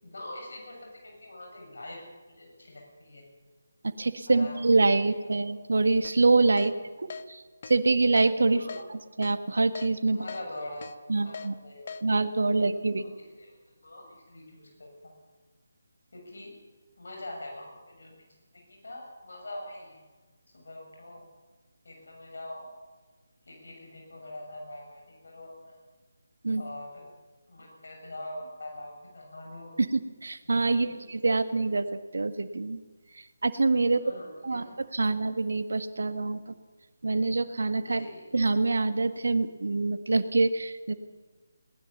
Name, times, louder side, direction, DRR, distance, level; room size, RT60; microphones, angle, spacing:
voice 1, 0.0-2.0 2.3-3.2 4.3-4.9 5.2-5.5 6.6-7.2 8.5-8.8 10.1-12.0 12.5-12.7 13.0-15.1 16.1-16.5 17.0-18.3 18.5-20.0 20.5-21.2 21.8-22.7 23.5-25.8 26.6-27.0 27.5-29.8 30.7-31.0 34.0-34.8 37.9-38.2, left 1 dB, 60° left, 0 dB, 7.1 m, -44 dB
voice 2, 3.8-6.7 7.3-7.4 7.7-10.2 11.1-11.6 12.0-13.1 26.4-26.6 29.8-32.8 33.4-34.0 34.4-36.4 37.0-38.1 38.3-40.9, right 3 dB, 60° right, 10 dB, 1.5 m, -25 dB
Keyboard (musical), 6.0-6.2 6.6-6.7 7.1-7.2 7.6-7.8 8.2-8.3 8.7-8.8 9.2-9.4 9.8-9.9 10.3-10.4 10.8-10.9 11.3-11.5 11.9-12.0, left 5 dB, 40° left, 1.0 m, -39 dB
21.5 x 19.0 x 7.1 m, 1.3 s
figure-of-eight pair, 150°, 0 cm